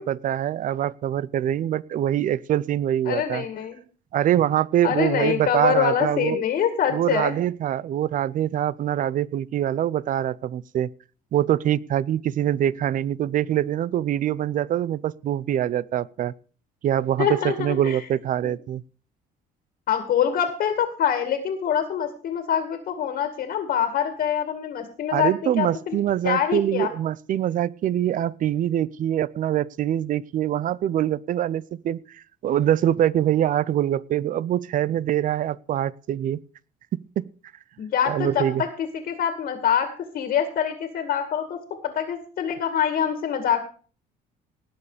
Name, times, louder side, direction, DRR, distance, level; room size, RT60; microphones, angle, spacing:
voice 1, 0.0-3.5 4.1-6.4 6.9-10.9 11.3-16.3 16.8-18.8 25.1-36.4 36.9-37.3 38.1-38.6, right 11 dB, 50° right, 22 dB, 0.5 m, -24 dB
voice 2, 3.1-3.8 4.8-7.4 17.2-18.0 18.4-18.6 19.9-26.0 26.2-26.9 37.8-41.6 41.8-43.7, left 8 dB, 65° left, 7 dB, 2.2 m, -25 dB
18.5 x 7.1 x 5.0 m, 0.40 s
cardioid pair, 110°, 17 cm